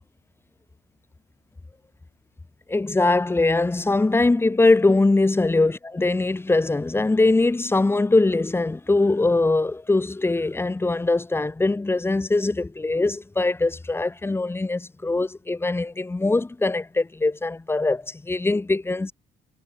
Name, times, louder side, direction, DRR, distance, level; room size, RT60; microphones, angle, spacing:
voice 1, 2.7-19.1, left 2 dB, 15° left, 1.9 m, -22 dB
cardioid pair, 110°, 17 cm